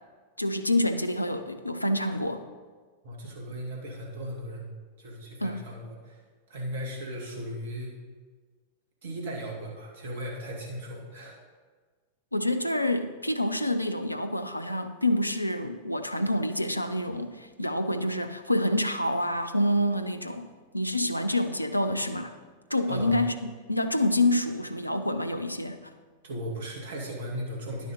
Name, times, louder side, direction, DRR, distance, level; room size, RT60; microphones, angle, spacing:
voice 1, 0.4-2.4 5.4-5.6 12.3-20.5 20.7-22.3 22.7-25.9, left 1 dB, 85° left, 8 dB, 0.5 m, -27 dB
voice 2, 3.0-6.2 6.5-7.9 9.0-11.4 22.9-23.2 26.2-27.9, equal, 60° right, -1 dB, 2.1 m, -37 dB
10.5 x 6.3 x 5.4 m, 1.5 s
figure-of-eight pair, 90°, 0 cm